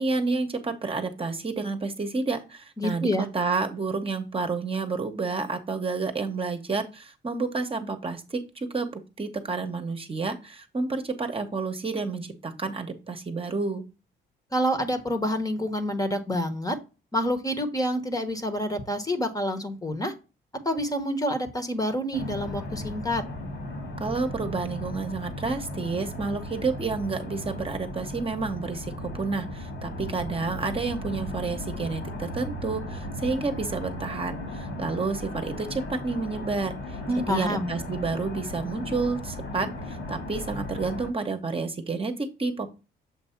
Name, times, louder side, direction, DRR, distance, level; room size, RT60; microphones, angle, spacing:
voice 1, 0.0-13.8 24.0-37.0 37.3-42.7, right 4 dB, 30° right, 5 dB, 1.0 m, -30 dB
voice 2, 2.8-3.3 14.5-16.8 17.1-20.1 20.6-23.2 37.1-37.7, equal, 20° left, 7 dB, 1.1 m, -27 dB
sound 1, 22.1-41.1, left 1 dB, 75° left, 2.6 m, -36 dB
7.2 x 2.6 x 5.7 m, 0.29 s
cardioid pair, 90°, 20 cm